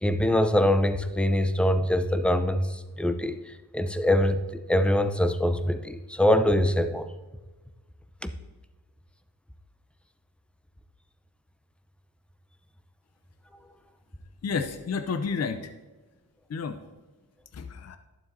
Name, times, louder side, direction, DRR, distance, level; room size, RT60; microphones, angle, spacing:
voice 1, 0.0-4.4 4.7-7.1 8.2-8.3, left 1 dB, 5° left, 9 dB, 0.6 m, -24 dB
voice 2, 14.4-15.7 16.5-16.8 17.5-18.0, left 5 dB, 40° left, 8 dB, 0.6 m, -30 dB
11.5 x 7.2 x 2.7 m, 1.2 s
cardioid pair, 60°, 39 cm